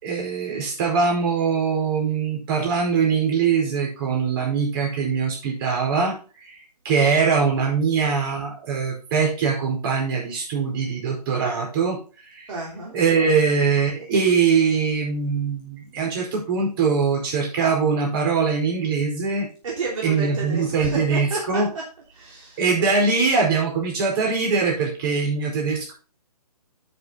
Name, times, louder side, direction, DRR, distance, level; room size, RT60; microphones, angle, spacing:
voice 1, 0.0-6.2 6.4-6.5 6.8-12.0 12.3-12.4 12.9-19.5 20.0-21.7 22.6-25.9, right 5 dB, 35° right, -1 dB, 4.8 m, -22 dB
voice 2, 12.5-12.9 19.6-21.6 22.2-22.6, right 3 dB, 55° right, -3 dB, 3.4 m, -30 dB
10.5 x 7.0 x 3.9 m, 0.36 s
hypercardioid pair, 150°, 20 cm